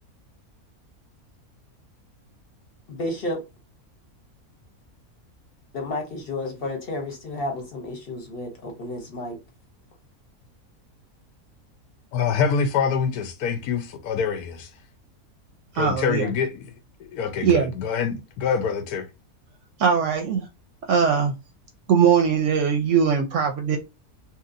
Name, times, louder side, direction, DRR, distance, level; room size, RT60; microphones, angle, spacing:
voice 1, 2.9-3.4 5.7-9.4, left 1 dB, 45° left, 1.0 m, -31 dB
voice 2, 12.1-14.7 15.7-16.7 17.0-19.1, left 6 dB, 85° left, 1.2 m, -25 dB
voice 3, 15.8-16.3 17.4-17.7 19.8-20.4 20.9-21.3 21.9-23.8, right 7 dB, 65° right, 0.8 m, -20 dB
2.9 x 2.9 x 2.5 m
omnidirectional pair, 1.6 m